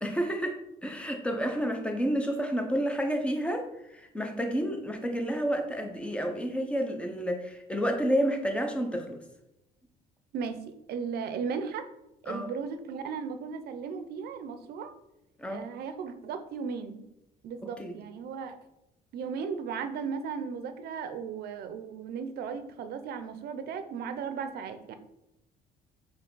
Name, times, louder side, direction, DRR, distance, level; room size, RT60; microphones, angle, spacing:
voice 1, 0.0-9.2 12.3-12.5 15.4-15.7 17.8-18.0, equal, 5° left, 4 dB, 0.7 m, -30 dB
voice 2, 10.3-11.9 12.2-14.9 15.5-17.0 17.4-18.6 19.1-25.0, right 6 dB, 70° right, 9 dB, 0.6 m, -36 dB
4.5 x 2.8 x 3.9 m, 0.88 s
cardioid pair, 110°, 17 cm